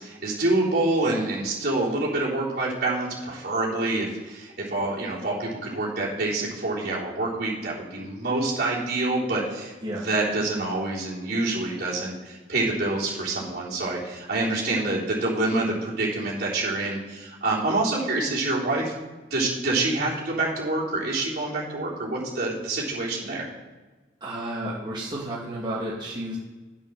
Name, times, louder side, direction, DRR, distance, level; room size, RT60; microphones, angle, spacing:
voice 1, 0.0-18.9 19.3-23.5, right 2 dB, 55° right, -7 dB, 3.7 m, -27 dB
voice 2, 24.2-26.4, right 1 dB, 25° right, -5 dB, 1.7 m, -32 dB
9.1 x 5.6 x 6.4 m, 1.2 s
head